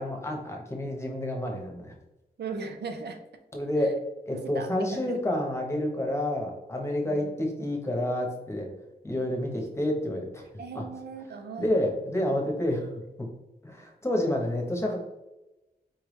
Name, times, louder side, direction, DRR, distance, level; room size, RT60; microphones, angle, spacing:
voice 1, 0.0-1.9 3.5-4.0 4.3-8.7 9.0-10.4 10.7-10.8 11.6-12.9 13.2-13.3 13.6-15.0, left 1 dB, 15° left, 1 dB, 1.0 m, -29 dB
voice 2, 2.4-3.2 3.8-3.9 4.3-5.4 7.1-7.4 10.6-11.7, right 4 dB, 85° right, 6 dB, 0.6 m, -38 dB
4.5 x 3.3 x 3.2 m, 0.98 s
wide cardioid pair, 100°, 17 cm